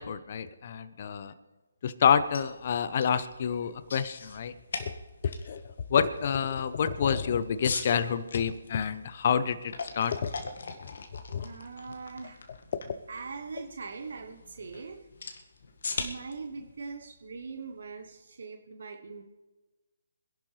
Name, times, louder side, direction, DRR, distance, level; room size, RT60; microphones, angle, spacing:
voice 1, 0.0-1.3 1.8-4.5 4.8-4.9 5.2-5.6 5.9-10.3 11.3-11.5, left 7 dB, 45° left, 13 dB, 0.9 m, -28 dB
sound 1, 2.2-18.1, left 4 dB, 65° left, 1.9 m, -42 dB
voice 2, 11.4-12.4 13.1-15.1 16.0-19.2, right 4 dB, 65° right, 5 dB, 1.2 m, -41 dB
25.0 x 11.5 x 3.4 m, 1.2 s
figure-of-eight pair, 150°, 0 cm